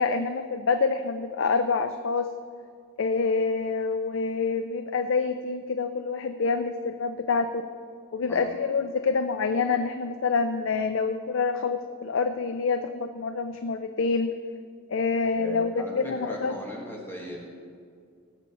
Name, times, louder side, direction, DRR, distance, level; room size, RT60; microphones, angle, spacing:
voice 1, 0.0-2.3 3.0-7.6 8.1-14.3 14.9-16.5, left 4 dB, 65° left, 8 dB, 0.5 m, -27 dB
voice 2, 15.4-17.4, equal, 10° left, -2 dB, 1.4 m, -38 dB
18.0 x 7.1 x 4.2 m, 2.2 s
head